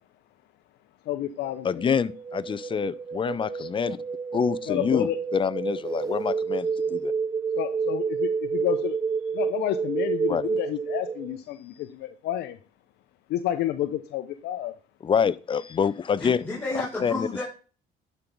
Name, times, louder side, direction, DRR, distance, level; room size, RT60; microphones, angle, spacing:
voice 1, 1.1-1.9 4.7-5.2 7.6-9.0 9.3-12.6 13.3-14.7, left 13 dB, 75° left, 0.7 m, -30 dB
sound 1, 1.4-11.4, right 5 dB, 20° right, 0.5 m, -29 dB
voice 2, 1.6-4.0 4.3-7.1 10.3-10.5 15.0-16.5 17.0-17.3, left 7 dB, 30° left, 0.6 m, -26 dB
voice 3, 16.2-17.4, left 2 dB, 10° left, 4.5 m, -31 dB
11.0 x 4.6 x 5.3 m
cardioid pair, 110°, 17 cm